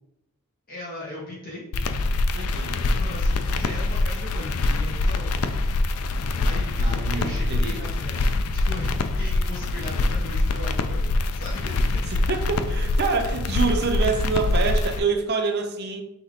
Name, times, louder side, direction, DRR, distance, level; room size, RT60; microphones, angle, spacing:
voice 1, 0.7-1.7 3.0-5.6 6.4-11.7, left 1 dB, 40° left, -4 dB, 0.9 m, -38 dB
sound 1, 1.7-15.0, left 2 dB, 80° left, 0.4 m, -24 dB
voice 2, 2.3-2.9 6.8-7.8 12.1-16.0, right 4 dB, 50° right, 4 dB, 0.6 m, -26 dB
6.2 x 2.8 x 2.9 m, 0.88 s
head